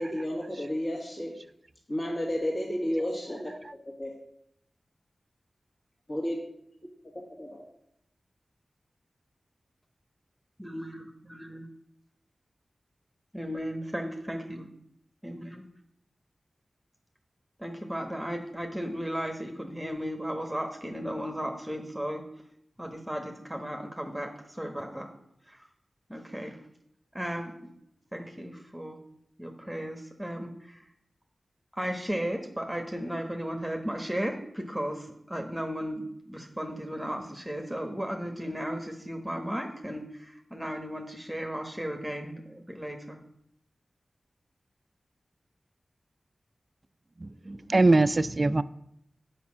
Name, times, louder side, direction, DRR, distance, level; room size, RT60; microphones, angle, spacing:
voice 1, 0.0-1.3 1.9-3.5 4.0-4.1 6.1-6.4 7.4-7.6, equal, 45° left, -3 dB, 2.1 m, -31 dB
voice 2, 10.6-11.7 13.3-14.7 15.2-15.6 17.6-22.2 22.8-25.1 25.4-25.7 26.1-26.6 27.1-27.5 28.1-29.0 29.4-30.9 31.7-43.2, equal, 5° right, 4 dB, 1.2 m, -35 dB
voice 3, 47.2-48.6, right 2 dB, 40° right, 15 dB, 0.4 m, -23 dB
8.4 x 5.3 x 7.3 m, 0.76 s
wide cardioid pair, 65°, 0 cm